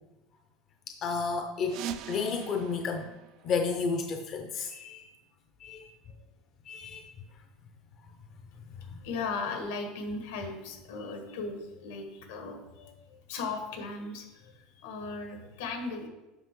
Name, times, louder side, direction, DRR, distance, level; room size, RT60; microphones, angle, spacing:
voice 1, 0.9-1.8 2.1-3.1 3.4-5.1 5.6-5.9 6.7-7.1, left 5 dB, 35° left, 5 dB, 0.5 m, -32 dB
sound 1, 1.6-4.2, right 9 dB, 45° right, 0.4 m, -42 dB
voice 2, 8.8-16.1, left 3 dB, 80° left, 4 dB, 1.5 m, -37 dB
8.1 x 5.5 x 3.7 m, 1.0 s
cardioid pair, 165°, 0 cm